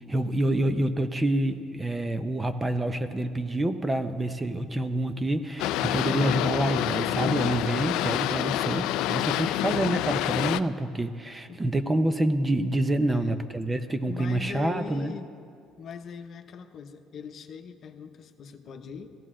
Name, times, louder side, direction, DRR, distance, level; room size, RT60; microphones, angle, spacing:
voice 1, 0.1-15.1, right 1 dB, 15° right, 9 dB, 0.6 m, -27 dB
Boat Water vehicle, 5.6-10.6, left 14 dB, 80° left, 0.3 m, -27 dB
voice 2, 13.1-13.5 14.1-15.3 15.8-19.2, left 6 dB, 50° left, 7 dB, 0.8 m, -41 dB
16.0 x 15.0 x 3.7 m, 2.3 s
cardioid pair, 110°, 0 cm